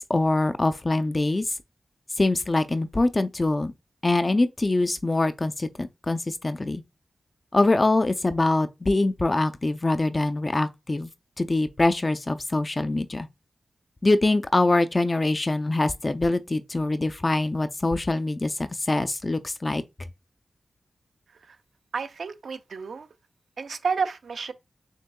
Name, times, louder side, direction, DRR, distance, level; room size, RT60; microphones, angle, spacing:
voice 1, 0.0-1.5 2.2-3.7 4.0-6.8 7.5-11.1 11.4-13.3 14.0-19.8, left 2 dB, 30° left, 0.4 m, -24 dB
voice 2, 21.9-23.1 23.6-24.5, right 5 dB, 80° right, 0.5 m, -30 dB
6.5 x 3.5 x 2.2 m
wide cardioid pair, 115°, 0 cm